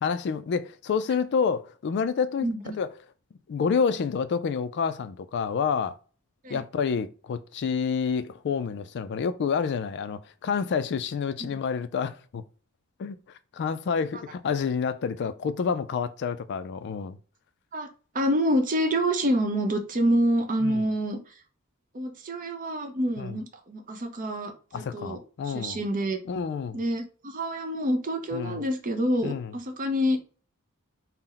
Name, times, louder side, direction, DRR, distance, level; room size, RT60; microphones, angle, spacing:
voice 1, 0.0-2.5 2.8-2.9 3.5-6.0 6.5-12.4 13.0-17.2 20.6-20.8 23.2-23.4 24.7-25.8 26.3-26.8 28.3-28.6 29.2-29.5, left 6 dB, 55° left, 0.3 m, -28 dB
voice 2, 2.4-2.7 6.4-6.6 11.4-11.6 17.7-17.9 18.1-21.2 21.9-25.2 25.4-26.2 26.7-30.2, equal, 40° right, 0.7 m, -27 dB
4.2 x 2.0 x 3.8 m
head